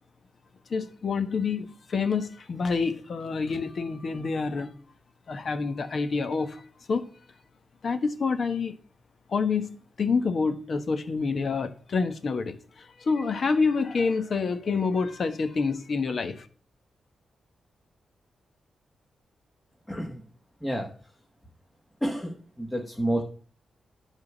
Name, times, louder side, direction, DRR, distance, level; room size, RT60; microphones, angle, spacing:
voice 1, 0.7-4.7 5.3-6.6 6.9-7.0 7.8-8.8 9.3-16.5, left 4 dB, 50° left, 1.1 m, -27 dB
voice 2, 19.9-20.2 20.6-20.9 22.0-23.2, right 1 dB, 10° left, 1.5 m, -29 dB
10.5 x 3.7 x 7.2 m
cardioid pair, 100°, 0 cm